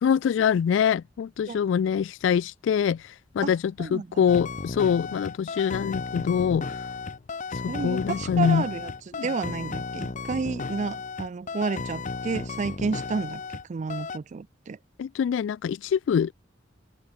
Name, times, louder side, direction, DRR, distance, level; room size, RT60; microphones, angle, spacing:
voice 1, 0.0-6.8 7.5-8.6 9.1-9.3 15.0-16.3, left 7 dB, 80° left, 0.3 m, -24 dB
voice 2, 3.8-4.2 7.7-13.4 13.7-14.8, right 4 dB, 40° right, 0.4 m, -31 dB
sound 1, 4.3-13.6 13.9-14.2, left 4 dB, 40° left, 0.7 m, -34 dB
open air
head